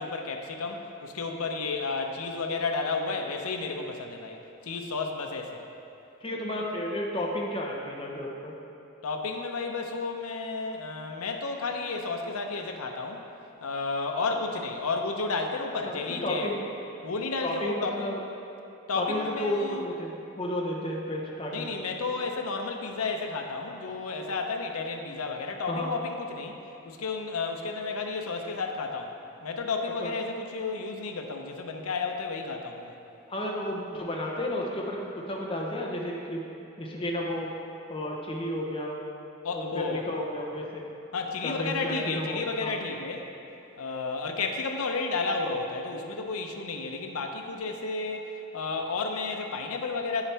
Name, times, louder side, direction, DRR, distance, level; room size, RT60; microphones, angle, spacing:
voice 1, 0.0-5.6 9.0-13.2 13.6-16.5 17.0-18.2 18.9-19.8 21.5-26.6 26.8-29.1 29.4-32.9 39.4-40.0 41.1-43.3 43.8-50.3, left 4 dB, 85° left, 3 dB, 0.7 m, -32 dB
voice 2, 6.2-8.5 15.8-16.5 17.4-18.2 18.9-21.8 25.7-25.9 30.0-30.1 33.3-36.4 36.8-37.5 37.9-39.0 39.5-40.8 41.4-42.8, left 1 dB, 25° left, -2 dB, 0.8 m, -32 dB
8.8 x 7.2 x 3.4 m, 2.8 s
head